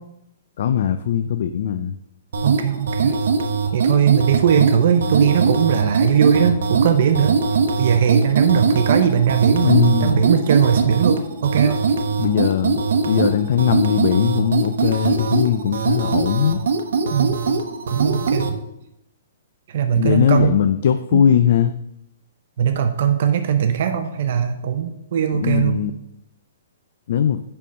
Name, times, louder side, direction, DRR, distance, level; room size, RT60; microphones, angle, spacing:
voice 1, 0.6-2.0 9.6-10.3 12.2-16.6 20.0-21.7 25.3-25.9 27.1-27.4, left 9 dB, 50° left, 10 dB, 0.4 m, -19 dB
sound 1, 2.3-18.5, right 4 dB, 70° right, 0.9 m, -21 dB
voice 2, 2.4-3.2 3.7-7.4 7.8-11.8 17.1-17.4 17.9-18.6 19.7-20.6 21.1-21.2 22.6-25.8, right 8 dB, 45° right, 7 dB, 0.6 m, -19 dB
6.8 x 5.5 x 6.2 m, 0.84 s
hypercardioid pair, 170°, 0 cm